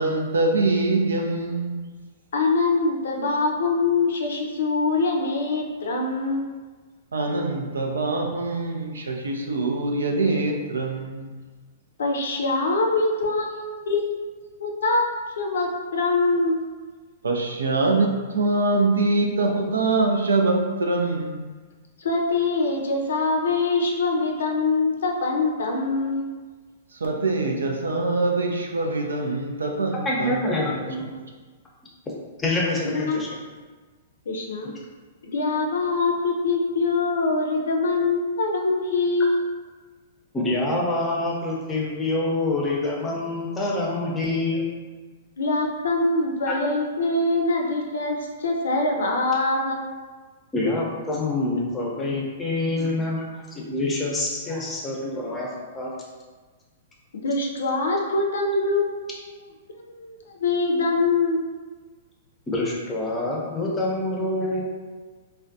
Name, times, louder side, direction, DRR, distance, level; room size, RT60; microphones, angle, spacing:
voice 1, 0.0-1.8 7.1-11.4 17.2-21.5 26.9-30.6, right 2 dB, 90° right, 2 dB, 0.4 m, -24 dB
voice 2, 2.3-6.4 12.0-14.2 14.6-15.1 15.4-16.6 22.0-26.3 32.8-33.3 34.3-34.7 35.3-39.5 45.4-49.8 57.2-59.1 59.4-59.5 59.9-61.5, left 3 dB, 75° left, 1 dB, 0.4 m, -24 dB
voice 3, 30.0-31.1 32.4-33.3 40.3-44.7 46.5-46.6 50.5-55.5 55.7-55.9 62.5-64.6, left 2 dB, 15° left, -4 dB, 0.6 m, -26 dB
2.3 x 2.1 x 2.6 m, 1.4 s
hypercardioid pair, 120°, 0 cm